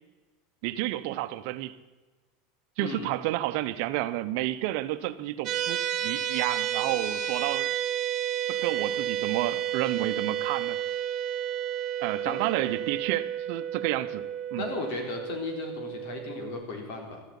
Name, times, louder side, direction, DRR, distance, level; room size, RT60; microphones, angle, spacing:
voice 1, 0.6-1.8 2.8-7.7 8.5-10.8 12.0-14.2 14.5-14.6, right 15 dB, 65° right, 0.8 m, -30 dB
sound 1, 5.5-16.6, right 10 dB, 40° right, 1.4 m, -31 dB
voice 2, 14.6-17.2, left 3 dB, 65° left, 3.8 m, -35 dB
13.0 x 8.1 x 10.0 m
supercardioid pair, 125°, 0 cm